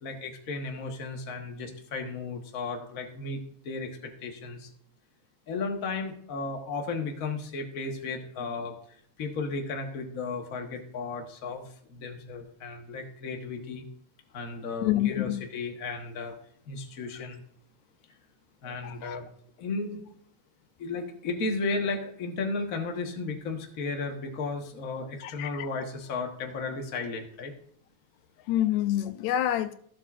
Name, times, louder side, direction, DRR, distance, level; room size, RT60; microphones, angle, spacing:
voice 1, 0.0-4.7 5.5-8.7 9.2-13.9 14.3-16.3 16.7-17.4 18.6-19.3 19.6-20.0 20.8-27.5, left 3 dB, 50° left, 2 dB, 1.0 m, -34 dB
voice 2, 14.8-15.3 18.8-19.2 25.2-25.7 28.5-29.8, left 13 dB, 80° left, 11 dB, 1.9 m, -27 dB
14.5 x 7.7 x 2.5 m, 0.63 s
omnidirectional pair, 3.4 m